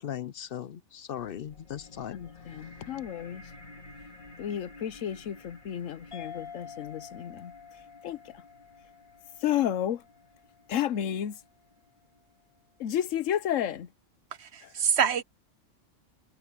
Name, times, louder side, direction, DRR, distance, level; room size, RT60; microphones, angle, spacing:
voice 1, 0.0-2.2 2.6-2.9, left 10 dB, 60° left, 0.7 m, -38 dB
sound 1, 1.4-12.2, left 2 dB, 40° left, 2.4 m, -52 dB
voice 2, 2.1-3.5 4.4-7.5 8.0-8.4 9.4-10.0 10.7-11.4 12.8-13.9 14.6-14.7, left 10 dB, 85° left, 1.2 m, -32 dB
sound 2, 6.1-11.0, left 6 dB, 25° left, 1.9 m, -48 dB
voice 3, 14.4-15.2, right 7 dB, 60° right, 1.2 m, -26 dB
omnidirectional pair, 1.3 m